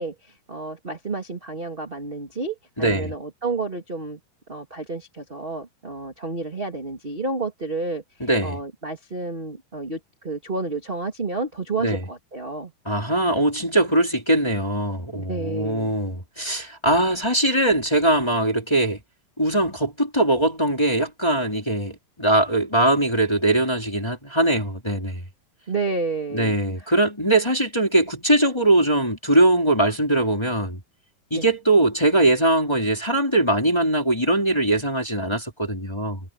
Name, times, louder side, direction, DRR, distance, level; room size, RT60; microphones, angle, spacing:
voice 1, 0.0-4.2 4.5-12.7 15.1-15.9 25.7-26.9 31.3-31.5, right 3 dB, 15° right, 2.1 m, -30 dB
voice 2, 2.8-3.1 8.2-8.6 11.8-12.0 12.8-19.0 19.4-25.2 26.3-30.8 31.3-36.2, right 1 dB, 5° left, 3.2 m, -21 dB
omnidirectional pair, 4.4 m